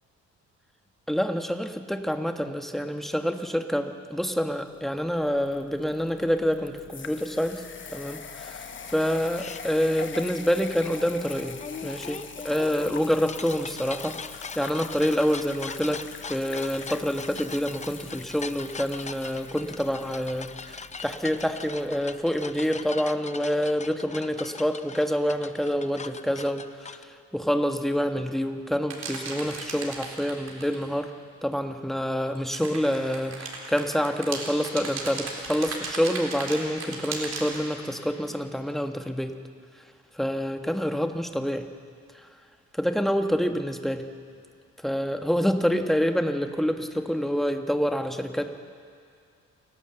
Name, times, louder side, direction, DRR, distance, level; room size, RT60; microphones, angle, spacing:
voice 1, 1.1-7.6 7.9-31.1 31.4-39.3 40.1-41.7 42.1-42.3 42.7-44.1 44.8-48.5, equal, ahead, 6 dB, 1.3 m, -27 dB
sound 1, 4.7-22.7, left 6 dB, 40° left, 1.2 m, -43 dB
sound 2, 9.4-9.6 11.6-27.0, left 5 dB, 25° left, 0.6 m, -41 dB
sound 3, 28.9-30.9 32.3-37.7, right 4 dB, 55° right, 3.9 m, -36 dB
28.5 x 12.0 x 7.9 m, 2.3 s
cardioid pair, 90°, 30 cm